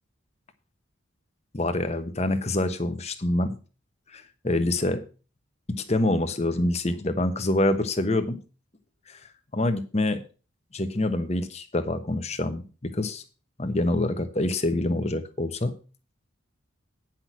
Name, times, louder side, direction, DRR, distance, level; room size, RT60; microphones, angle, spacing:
voice 1, 1.5-3.6 4.1-5.0 5.9-8.4 9.1-9.2 9.5-10.2 10.7-13.2 13.6-15.7, left 1 dB, 30° left, 9 dB, 1.0 m, -26 dB
9.8 x 6.0 x 6.1 m, 0.35 s
head